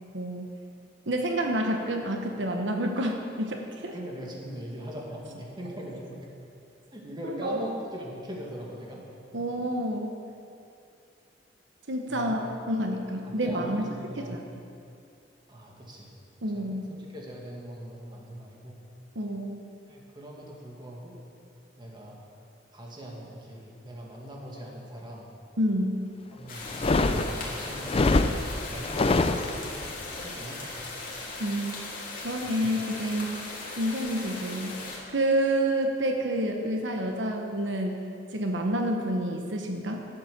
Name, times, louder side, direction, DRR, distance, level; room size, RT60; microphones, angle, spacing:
voice 1, 0.1-0.5 1.1-3.9 7.2-7.6 9.3-10.1 11.9-13.8 14.3-14.4 16.4-16.9 19.1-19.6 25.6-26.0 31.4-31.7 32.2-33.4 33.8-34.7 35.1-38.0 38.3-40.0, right 1 dB, 85° right, 2 dB, 1.1 m, -28 dB
voice 2, 3.9-6.2 6.9-9.1 9.4-9.7 12.1-12.5 13.2-14.4 15.5-16.2 16.5-18.9 19.9-21.2 21.8-22.2 22.7-25.3 26.3-26.8 27.0-29.8 30.1-30.9 32.4-32.5, equal, 25° right, -2 dB, 2.1 m, -41 dB
sound 1, 26.5-35.0, left 2 dB, 50° left, 2.6 m, -38 dB
sound 2, 26.7-29.9, left 2 dB, 35° left, 0.5 m, -25 dB
11.5 x 8.8 x 6.6 m, 2.5 s
head